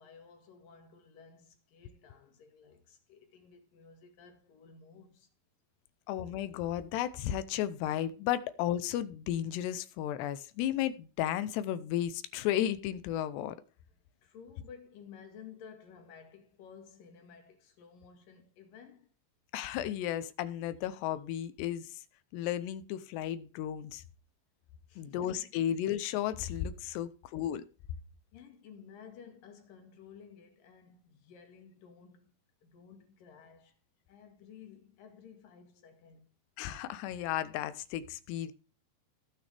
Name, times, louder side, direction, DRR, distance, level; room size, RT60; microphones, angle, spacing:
voice 1, 0.0-5.3 14.0-19.1 24.9-25.5 28.3-32.3 32.6-33.8 34.1-36.3, left 6 dB, 60° left, 3.3 m, -54 dB
voice 2, 6.1-13.6 19.5-21.9 22.3-24.0 25.0-27.6 36.6-38.5, left 11 dB, 85° left, 2.9 m, -34 dB
19.0 x 6.3 x 3.4 m
omnidirectional pair, 4.9 m